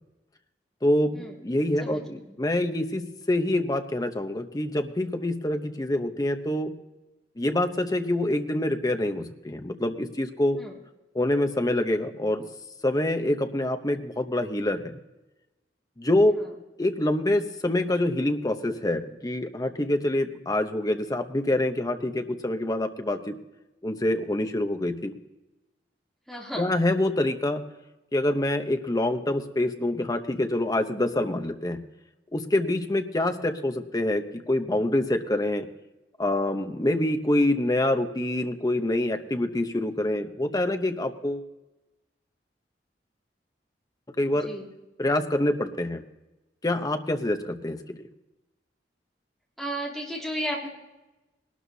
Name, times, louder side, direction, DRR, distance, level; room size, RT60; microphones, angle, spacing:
voice 1, 0.8-6.7 7.4-10.6 11.1-12.5 12.8-15.0 16.0-16.3 16.8-23.4 23.8-25.1 26.5-27.6 28.1-31.8 32.3-35.7 36.2-41.5 44.2-44.5 45.0-46.0 46.6-48.0, left 1 dB, 20° left, 7 dB, 0.8 m, -26 dB
voice 2, 26.3-26.7 44.3-44.7 49.6-50.7, equal, ahead, -4 dB, 3.1 m, -33 dB
20.5 x 12.5 x 2.8 m, 1.0 s
head